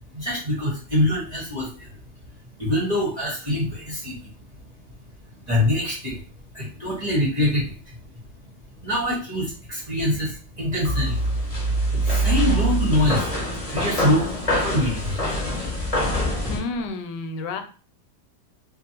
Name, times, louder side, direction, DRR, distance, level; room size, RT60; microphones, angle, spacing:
voice 1, 0.1-1.9 2.6-4.2 5.5-6.2 6.5-7.8 8.8-11.2 12.0-13.3 13.7-14.3 14.6-15.2, left 1 dB, 30° right, -5 dB, 0.8 m, -24 dB
sound 1, 10.8-16.6, right 1 dB, 30° left, 0.8 m, -24 dB
voice 2, 16.5-17.6, left 3 dB, 90° left, 7 dB, 1.2 m, -30 dB
2.6 x 2.5 x 2.8 m, 0.37 s
omnidirectional pair, 1.8 m